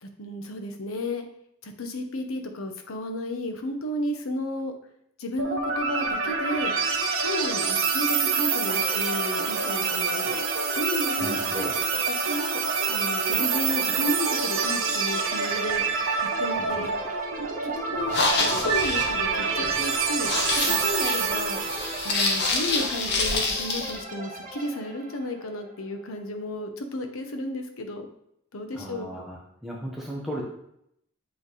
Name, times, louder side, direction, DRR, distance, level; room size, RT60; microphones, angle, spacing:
voice 1, 0.0-1.3 1.6-4.7 5.2-6.7 7.2-10.4 10.7-11.3 12.1-12.6 12.9-15.8 16.4-16.9 17.6-21.6 22.0-28.1 28.5-29.1, left 1 dB, 80° left, 6 dB, 0.8 m, -33 dB
sound 1, 5.4-22.3, right 5 dB, 75° right, 0.8 m, -27 dB
sound 2, 8.7-26.3, right 1 dB, 40° right, 0.9 m, -39 dB
voice 2, 11.2-11.7 16.6-16.9 28.7-30.4, equal, ahead, -4 dB, 0.9 m, -36 dB
sound 3, 18.0-24.0, left 3 dB, 50° left, 0.9 m, -27 dB
7.7 x 3.3 x 4.1 m, 0.76 s
head